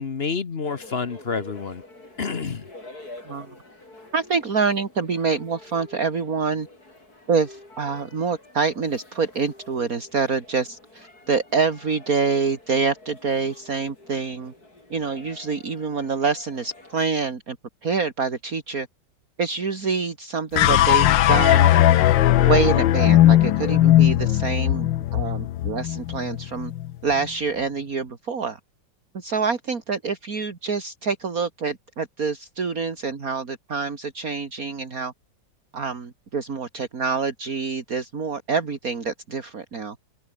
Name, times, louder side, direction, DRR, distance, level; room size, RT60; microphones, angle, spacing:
voice 1, 0.0-1.8 2.2-2.6, left 5 dB, 40° left, 1.2 m, -28 dB
sound 1, 0.6-17.1, left 2 dB, 55° left, 7.5 m, -47 dB
voice 2, 4.1-6.7 7.3-14.5 14.9-17.6 17.8-18.9 19.4-21.7 22.4-26.7 27.0-28.6 29.1-35.1 35.7-40.0, right 5 dB, 50° right, 2.7 m, -26 dB
sound 2, 20.6-26.9, left 13 dB, 90° left, 1.5 m, -18 dB
omnidirectional pair, 2.0 m